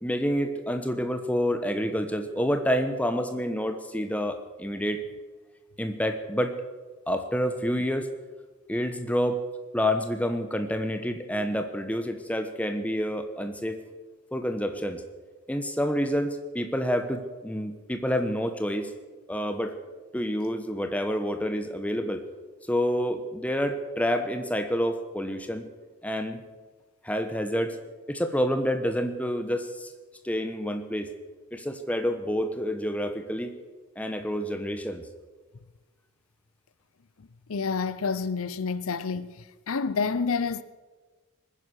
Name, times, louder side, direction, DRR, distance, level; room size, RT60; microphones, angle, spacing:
voice 1, 0.0-5.0 5.8-6.5 7.1-8.1 8.7-9.4 9.7-13.8 14.3-15.0 15.5-18.9 19.3-19.8 20.1-22.2 22.7-25.6 26.0-26.4 27.0-27.8 28.1-29.9 30.2-31.1 31.5-33.5 34.0-35.0, equal, 5° left, 1.1 m, -28 dB
voice 2, 37.5-39.4 39.7-40.6, left 5 dB, 75° left, 0.6 m, -28 dB
21.5 x 10.0 x 6.4 m
head